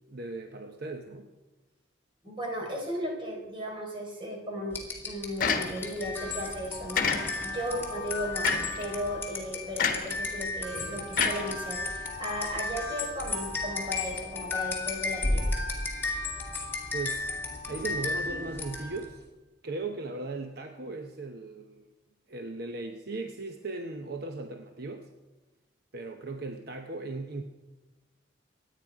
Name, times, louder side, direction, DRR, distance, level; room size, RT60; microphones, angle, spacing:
voice 1, 0.1-1.3 7.7-7.8 16.9-17.4 17.7-19.2 19.6-21.9 22.3-25.1 25.9-27.4, right 3 dB, 60° right, 4 dB, 0.8 m, -37 dB
voice 2, 2.2-8.5 8.8-15.5, equal, 30° right, -1 dB, 4.2 m, -36 dB
sound 1, 4.7-19.2, left 3 dB, 15° left, 2.4 m, -34 dB
sound 2, 5.4-6.1 7.0-7.6 8.4-8.9 9.8-10.2 11.2-12.1, left 5 dB, 50° left, 1.3 m, -28 dB
25.0 x 9.4 x 4.8 m, 1.2 s
head